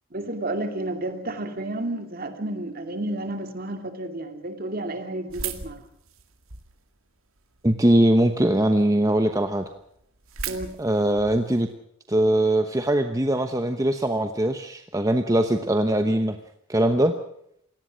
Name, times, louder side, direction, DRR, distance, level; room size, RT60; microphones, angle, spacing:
voice 1, 0.1-5.9 10.5-10.7, right 1 dB, 45° right, 7 dB, 2.6 m, -31 dB
sound 1, 5.3-6.8 7.4-8.0 8.5-8.6 8.8-8.9 9.3-9.4 9.6-11.6, right 7 dB, 75° right, 2.2 m, -36 dB
voice 2, 7.6-9.7 10.8-11.7 12.1-16.4 16.7-17.1, right 1 dB, 15° right, 7 dB, 1.0 m, -21 dB
27.5 x 18.0 x 6.3 m, 0.73 s
head